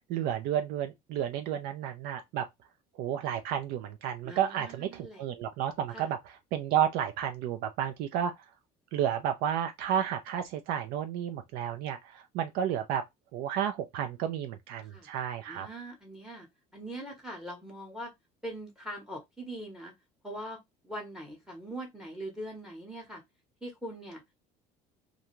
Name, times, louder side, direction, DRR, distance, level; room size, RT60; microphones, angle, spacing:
voice 1, 0.1-2.5 3.0-8.4 8.9-13.0 13.3-15.7, right 9 dB, 75° right, 0.4 m, -32 dB
voice 2, 4.2-5.2 5.9-6.1 14.8-15.1 15.5-16.5 16.7-18.1 18.4-19.9 20.2-20.6 20.8-23.2 23.6-24.3, right 1 dB, 5° right, 0.8 m, -42 dB
2.5 x 2.2 x 2.9 m
cardioid pair, 125°, 16 cm